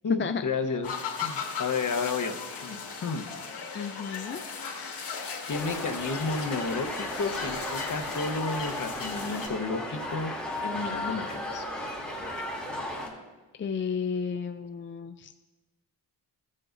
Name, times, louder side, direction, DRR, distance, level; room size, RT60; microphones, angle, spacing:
voice 1, 0.0-0.9 1.2-2.4 2.6-3.3 5.5-6.9 7.2-10.3 10.6-11.6, left 4 dB, 50° left, 6 dB, 1.0 m, -31 dB
sound 1, 0.8-9.5, left 5 dB, 80° left, 1.8 m, -37 dB
voice 2, 3.7-4.4 13.6-15.3, left 6 dB, 30° left, 8 dB, 0.4 m, -32 dB
sound 2, 5.5-13.1, left 1 dB, 5° left, 2.8 m, -35 dB
17.0 x 7.6 x 2.6 m, 1.2 s
cardioid pair, 75°, 41 cm